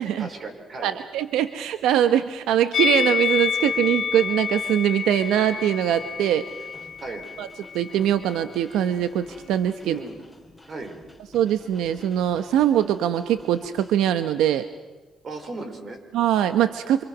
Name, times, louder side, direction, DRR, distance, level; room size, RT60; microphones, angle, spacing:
voice 1, 0.2-1.0 7.0-7.3 9.8-10.2 10.7-11.0 15.2-16.0, right 3 dB, 45° right, 6 dB, 4.7 m, -36 dB
voice 2, 0.8-6.4 7.4-7.5 7.7-10.0 11.3-14.7 16.1-17.0, right 10 dB, 90° right, 10 dB, 0.9 m, -22 dB
Musical instrument, 2.7-8.0 8.2-8.4, left 7 dB, 55° left, 1.4 m, -28 dB
sound 1, 3.6-14.0, left 1 dB, 5° left, 4.2 m, -49 dB
28.5 x 26.0 x 6.1 m, 1.3 s
cardioid pair, 90°, 0 cm